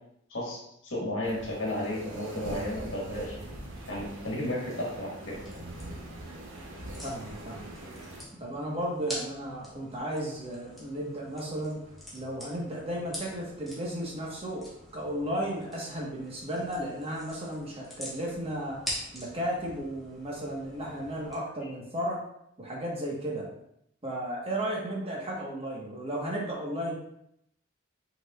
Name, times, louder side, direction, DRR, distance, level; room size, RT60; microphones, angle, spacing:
voice 1, 0.8-3.4 3.9-5.4, left 1 dB, 65° left, -3 dB, 1.6 m, -33 dB
sound 1, 1.2-8.2, right 1 dB, 80° right, 0.9 m, -42 dB
sound 2, 5.2-21.4, equal, ahead, 1.2 m, -45 dB
voice 2, 7.0-7.7 8.4-11.8 12.1-18.8 19.1-22.2 22.6-23.5 24.0-26.9, right 1 dB, 30° right, -3 dB, 1.2 m, -34 dB
5.5 x 4.1 x 2.3 m, 0.75 s
head